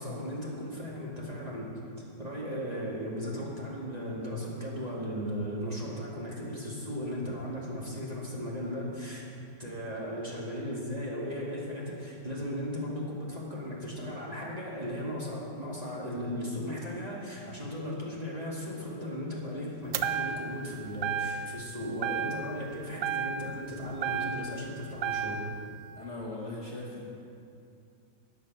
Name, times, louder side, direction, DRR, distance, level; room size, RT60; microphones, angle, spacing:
voice 1, 0.0-1.8 2.2-9.3 9.6-25.5, equal, 20° right, -5 dB, 2.2 m, -36 dB
sound 1, 19.9-20.7 21.0-21.7 22.0-22.7 23.0-24.7 25.0-25.6, right 7 dB, 80° right, 0.7 m, -33 dB
voice 2, 25.9-27.1, left 2 dB, 40° left, -4 dB, 1.6 m, -39 dB
13.0 x 9.5 x 6.0 m, 2.5 s
omnidirectional pair, 2.0 m